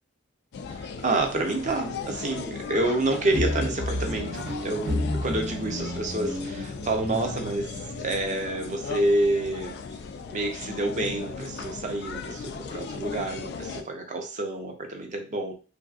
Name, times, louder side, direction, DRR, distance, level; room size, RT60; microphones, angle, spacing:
sound 1, 0.5-13.8, left 5 dB, 55° left, 0.3 m, -37 dB
voice 1, 0.7-9.7 10.3-15.5, right 2 dB, 40° right, 3 dB, 0.6 m, -28 dB
sound 2, 3.2-8.2, left 1 dB, 75° right, 0.8 m, -32 dB
3.3 x 2.6 x 2.4 m, 0.34 s
head